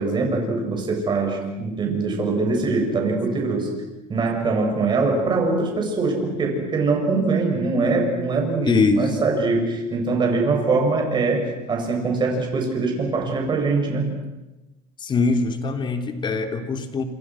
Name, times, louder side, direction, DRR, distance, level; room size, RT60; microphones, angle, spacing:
voice 1, 0.0-3.7 4.1-14.1, right 3 dB, 30° right, 1 dB, 7.9 m, -23 dB
voice 2, 8.6-9.1 15.0-17.0, left 4 dB, 30° left, 6 dB, 3.3 m, -22 dB
28.5 x 27.5 x 6.4 m, 1.0 s
cardioid pair, 125°, 16 cm